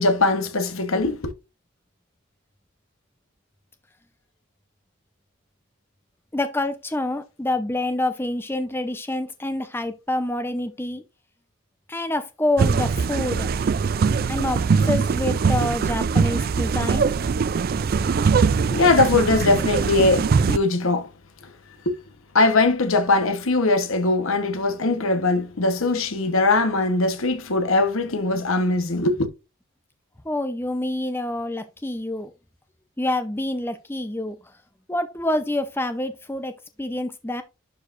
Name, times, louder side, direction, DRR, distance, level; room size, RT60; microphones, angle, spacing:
voice 1, 0.0-1.3 18.7-21.1 21.8-22.0 22.3-29.3, left 3 dB, 70° left, 1.1 m, -21 dB
voice 2, 6.3-11.0 11.9-13.5 14.3-17.1 30.2-32.3 33.0-34.4 34.9-37.4, left 1 dB, 10° left, 0.6 m, -27 dB
sound 1, 12.6-20.6, right 5 dB, 45° right, 0.3 m, -22 dB
11.5 x 4.7 x 2.5 m
head